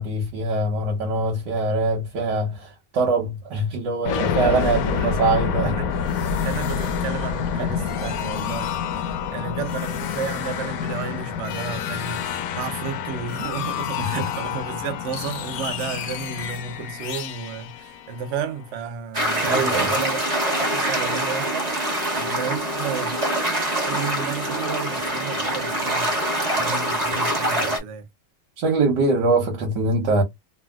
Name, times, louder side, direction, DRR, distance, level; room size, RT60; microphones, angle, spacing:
voice 1, 0.0-5.7 7.6-7.7 14.0-14.2 19.4-19.9 28.6-30.2, right 2 dB, 85° right, 1.6 m, -23 dB
sound 1, 4.0-18.7, left 7 dB, 70° left, 0.9 m, -28 dB
voice 2, 4.2-5.2 5.6-5.9 6.3-21.7 22.1-23.2 23.9-28.1, right 6 dB, 60° right, 0.8 m, -33 dB
sound 2, 19.1-27.8, right 1 dB, 25° right, 1.1 m, -24 dB
3.3 x 2.4 x 2.2 m
omnidirectional pair, 1.9 m